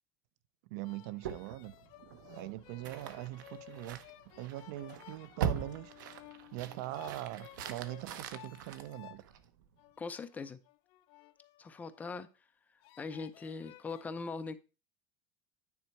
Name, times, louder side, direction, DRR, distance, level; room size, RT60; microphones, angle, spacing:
voice 1, 0.7-1.7 2.3-4.0 4.4-5.9 6.5-9.2, right 16 dB, 65° right, 0.5 m, -42 dB
sound 1, 0.8-9.2 9.8-12.3 12.8-14.0, left 16 dB, 50° left, 0.7 m, -56 dB
sound 2, 1.2-9.7, right 8 dB, 85° right, 0.9 m, -42 dB
voice 2, 10.0-10.6 11.6-12.3 13.0-14.6, left 4 dB, 15° left, 0.6 m, -41 dB
9.5 x 4.3 x 4.5 m
supercardioid pair, 145°, 10 cm